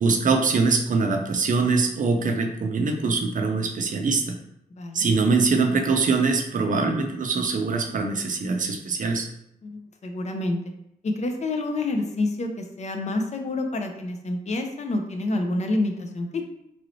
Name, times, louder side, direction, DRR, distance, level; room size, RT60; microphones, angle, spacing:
voice 1, 0.0-4.4 4.9-9.3, right 4 dB, 55° right, 5 dB, 0.4 m, -23 dB
voice 2, 4.7-5.1 9.6-10.6 11.0-16.4, left 2 dB, 50° left, 4 dB, 0.5 m, -28 dB
3.0 x 2.6 x 3.0 m, 0.79 s
wide cardioid pair, 130°, 16 cm